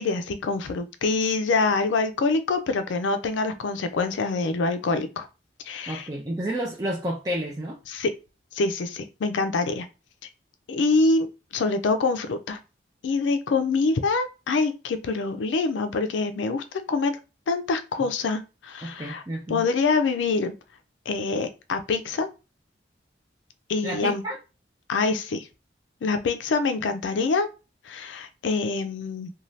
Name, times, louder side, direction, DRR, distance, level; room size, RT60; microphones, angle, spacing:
voice 1, 0.0-5.3 5.6-6.1 7.9-8.1 8.5-9.9 10.7-11.3 11.5-12.6 13.0-17.2 17.5-19.2 19.5-20.5 21.1-22.3 23.7-24.2 24.9-25.5 26.0-27.5 27.8-29.3, left 3 dB, 85° left, 0.4 m, -25 dB
voice 2, 5.9-7.8 18.8-19.6 23.8-24.4, right 1 dB, 20° right, 0.4 m, -30 dB
2.6 x 2.3 x 3.1 m
head